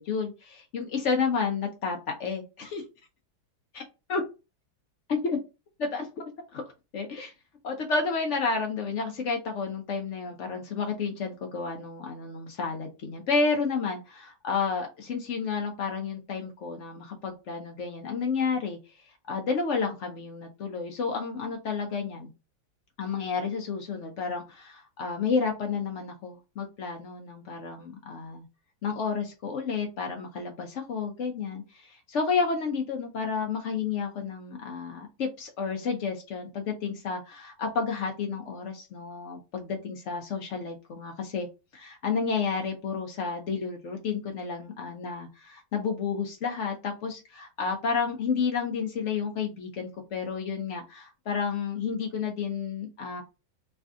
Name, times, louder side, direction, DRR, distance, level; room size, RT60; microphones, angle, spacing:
voice 1, 0.0-2.8 3.7-3.8 4.1-4.2 5.1-5.4 5.8-6.1 6.5-6.6 6.9-7.3 7.6-18.8 19.3-22.3 23.0-28.5 28.8-41.5 41.7-53.2, left 5 dB, 90° left, 3 dB, 0.6 m, -31 dB
3.3 x 2.5 x 3.5 m, 0.27 s
omnidirectional pair, 2.1 m